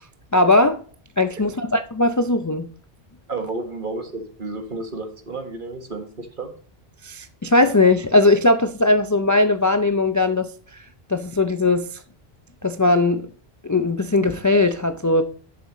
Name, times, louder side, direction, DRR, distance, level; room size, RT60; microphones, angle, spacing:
voice 1, 0.3-0.8 1.2-2.7 7.0-10.8 11.1-12.0 12.6-13.3 13.6-15.2, left 2 dB, 25° left, 0.4 m, -19 dB
voice 2, 3.3-6.5, right 3 dB, 55° right, 1.7 m, -31 dB
11.0 x 6.9 x 3.1 m
omnidirectional pair, 1.0 m